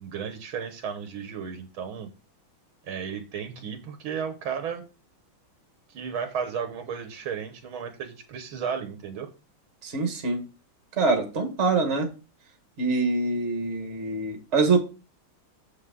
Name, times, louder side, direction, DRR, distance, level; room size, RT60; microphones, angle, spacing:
voice 1, 0.0-2.1 2.9-4.8 5.9-9.3, right 7 dB, 80° right, 7 dB, 1.8 m, -34 dB
voice 2, 9.8-10.4 10.9-12.1 12.8-14.8, right 3 dB, 35° right, 4 dB, 1.6 m, -24 dB
7.2 x 6.8 x 3.7 m, 0.31 s
omnidirectional pair, 2.2 m